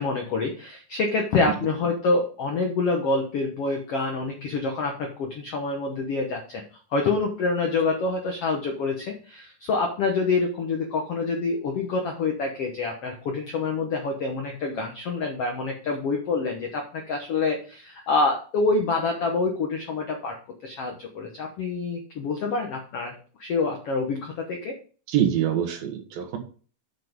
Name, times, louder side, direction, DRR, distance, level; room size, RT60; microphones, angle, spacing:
voice 1, 0.0-6.6 6.9-20.4 20.6-23.1 23.4-24.7, left 3 dB, 70° left, 2 dB, 1.4 m, -26 dB
voice 2, 25.1-26.4, right 10 dB, 75° right, 3 dB, 3.1 m, -24 dB
7.4 x 6.1 x 5.2 m, 0.40 s
omnidirectional pair, 4.3 m